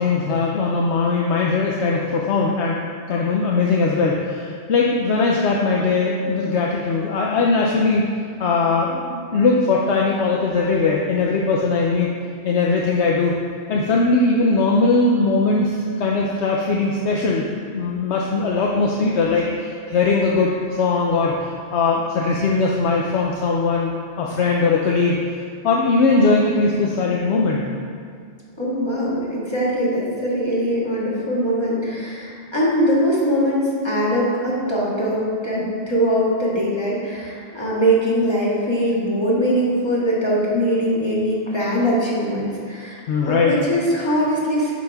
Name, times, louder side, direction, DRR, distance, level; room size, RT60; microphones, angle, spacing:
voice 1, 0.0-2.8 3.1-8.1 8.4-12.1 12.4-13.4 13.7-17.5 17.7-27.7 43.1-43.5, left 3 dB, 80° left, -2 dB, 0.9 m, -20 dB
voice 2, 28.6-44.7, equal, 25° left, -7 dB, 1.8 m, -21 dB
11.0 x 5.2 x 3.5 m, 2.2 s
omnidirectional pair, 1.1 m